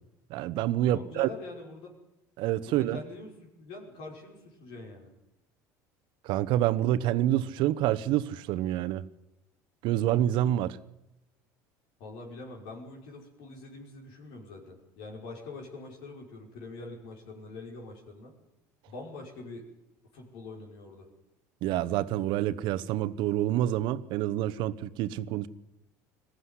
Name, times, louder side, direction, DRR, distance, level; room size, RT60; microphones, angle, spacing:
voice 1, 0.3-1.3 2.4-3.0 6.2-9.1 9.8-10.8 21.6-25.5, right 13 dB, 65° right, 1.0 m, -27 dB
voice 2, 0.8-1.9 2.6-5.1 12.0-18.3 18.9-19.6 20.1-21.1, left 3 dB, 70° left, 5.4 m, -44 dB
20.5 x 15.0 x 9.8 m
supercardioid pair, 85°, 9 cm